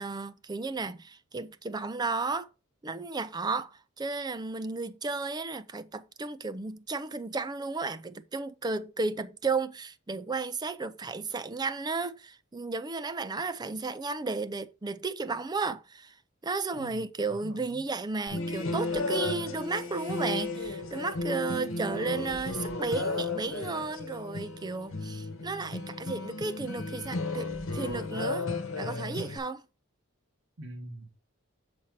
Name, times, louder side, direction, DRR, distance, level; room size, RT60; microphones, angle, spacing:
voice 1, 0.0-2.5 2.8-16.2 16.4-28.5 28.8-29.6, right 3 dB, 20° right, 0.5 m, -33 dB
voice 2, 16.7-17.0 17.3-17.9 30.6-31.2, right 1 dB, 75° right, 1.3 m, -44 dB
sound 1, 18.3-29.4, left 3 dB, 70° left, 1.3 m, -34 dB
7.1 x 4.4 x 4.6 m
head